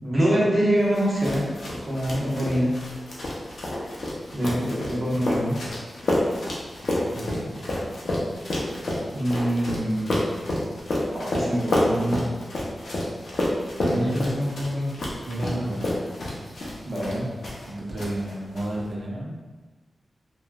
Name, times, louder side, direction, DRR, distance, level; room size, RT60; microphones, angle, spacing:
voice 1, 0.0-1.5 1.8-2.7 4.3-5.6 9.1-10.1 11.1-12.2 13.8-14.9 16.8-17.3, equal, 40° right, -6 dB, 1.0 m, -24 dB
sound 1, 0.9-17.7 18.0-18.6, left 1 dB, 70° left, 0.6 m, -29 dB
voice 2, 7.1-7.5 13.9-14.3 15.2-15.9 17.6-19.3, right 1 dB, 65° right, -4 dB, 0.6 m, -31 dB
3.0 x 2.3 x 2.2 m, 1.2 s
cardioid pair, 65°, 0 cm